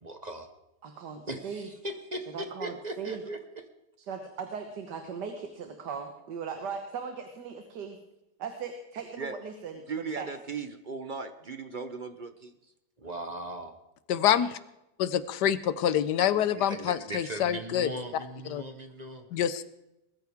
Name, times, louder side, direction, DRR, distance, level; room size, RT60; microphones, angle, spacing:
voice 1, 0.0-0.5 1.3-1.5 2.1-3.4 13.0-13.8 16.5-19.2, right 1 dB, 30° right, 6 dB, 1.1 m, -38 dB
voice 2, 0.8-1.7 2.3-3.2 4.1-8.0 8.4-10.3, right 6 dB, 85° right, 5 dB, 1.9 m, -38 dB
voice 3, 9.9-12.5, right 4 dB, 45° right, 9 dB, 0.6 m, -37 dB
voice 4, 14.1-14.6 15.0-17.9 18.5-18.6 19.3-19.6, left 10 dB, 80° left, 15 dB, 1.3 m, -26 dB
20.5 x 14.0 x 3.6 m, 0.88 s
omnidirectional pair, 1.8 m